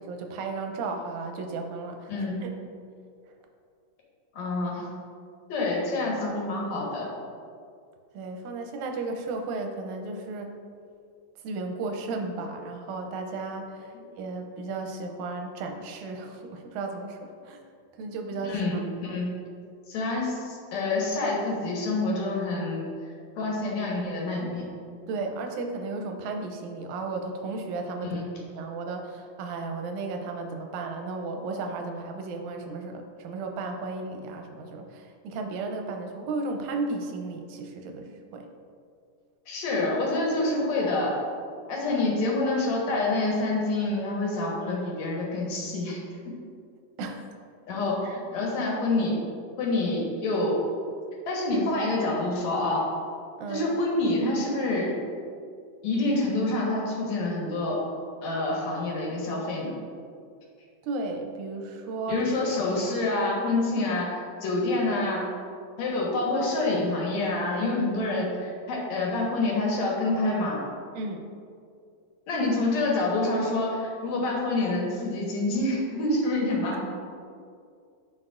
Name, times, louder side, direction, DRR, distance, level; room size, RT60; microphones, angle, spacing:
voice 1, 0.1-2.1 2.4-2.5 8.1-10.6 11.4-17.6 18.0-19.2 25.1-38.5 47.0-47.4 48.0-48.2 53.4-53.6 60.8-62.5 70.9-71.3, right 3 dB, 85° right, 4 dB, 2.1 m, -34 dB
voice 2, 2.1-2.4 4.3-4.9 5.5-7.1 13.9-14.0 18.4-19.4 19.9-22.9 23.4-24.7 28.1-28.3 39.5-41.1 41.7-46.3 47.7-49.2 49.6-50.6 51.3-52.9 53.5-54.9 55.8-57.8 58.2-59.7 62.1-65.3 65.8-70.6 72.3-76.8, left 2 dB, 75° left, -3 dB, 2.4 m, -27 dB
11.0 x 4.4 x 2.5 m, 2.3 s
omnidirectional pair, 3.3 m